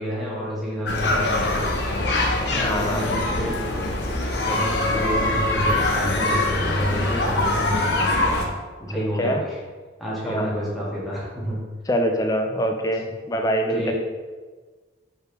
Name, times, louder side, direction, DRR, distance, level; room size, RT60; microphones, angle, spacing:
voice 1, 0.0-2.0 2.5-3.6 4.3-8.4 8.8-9.6 10.0-11.6 13.7-13.9, equal, ahead, -8 dB, 1.2 m, -30 dB
sound 1, 0.8-8.4, left 2 dB, 60° left, 0.6 m, -23 dB
voice 2, 2.5-3.1 8.9-9.4 10.3-10.5 11.9-13.9, equal, 20° left, 4 dB, 0.4 m, -24 dB
4.7 x 3.2 x 3.3 m, 1.4 s
head